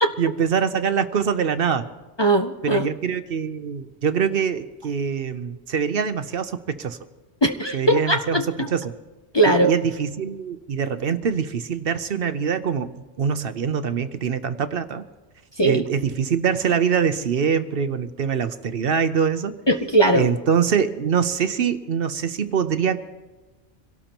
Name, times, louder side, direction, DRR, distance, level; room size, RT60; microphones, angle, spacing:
voice 1, 0.2-1.8 2.6-7.0 7.7-8.9 9.5-12.9 13.2-15.0 15.6-19.6 20.1-23.0, right 7 dB, 60° right, 11 dB, 0.9 m, -24 dB
voice 2, 2.2-2.9 7.4-8.7 9.3-9.7 15.6-15.9 19.7-20.3, right 1 dB, 30° left, 3 dB, 0.6 m, -19 dB
26.0 x 17.5 x 3.0 m, 1.2 s
omnidirectional pair, 1.1 m